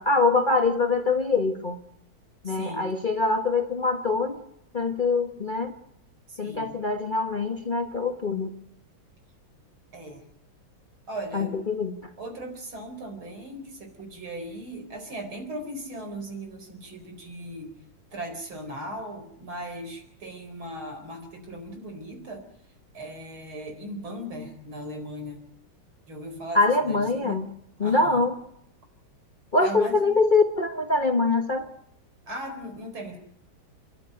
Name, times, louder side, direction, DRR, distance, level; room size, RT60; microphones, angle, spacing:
voice 1, 0.0-1.8 2.4-4.4 4.7-5.7 6.4-8.6 11.3-12.0 26.5-27.5 27.8-28.3 29.5-31.7, left 3 dB, 30° left, 6 dB, 1.1 m, -24 dB
voice 2, 2.5-2.9 6.3-6.8 9.9-10.2 11.1-11.6 12.2-17.7 18.1-22.5 22.9-25.4 26.1-27.4 27.8-28.3 29.6-30.1 32.3-33.2, right 1 dB, 80° right, 5 dB, 5.3 m, -38 dB
29.5 x 11.5 x 9.0 m, 0.76 s
omnidirectional pair, 2.2 m